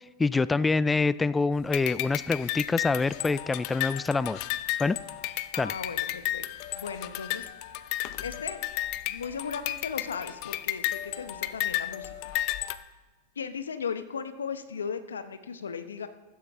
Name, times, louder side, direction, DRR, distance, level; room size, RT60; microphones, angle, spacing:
voice 1, 0.0-4.4 4.8-5.0 5.6-5.7, left 3 dB, 15° left, 18 dB, 0.3 m, -26 dB
sound 1, 1.7-12.8, left 15 dB, 50° left, 0.7 m, -33 dB
voice 2, 5.5-6.4 6.7-7.5 8.2-8.6 9.1-12.3 13.4-16.1, left 6 dB, 80° left, 10 dB, 1.0 m, -36 dB
14.5 x 13.0 x 3.7 m, 1.2 s
hypercardioid pair, 100°, 0 cm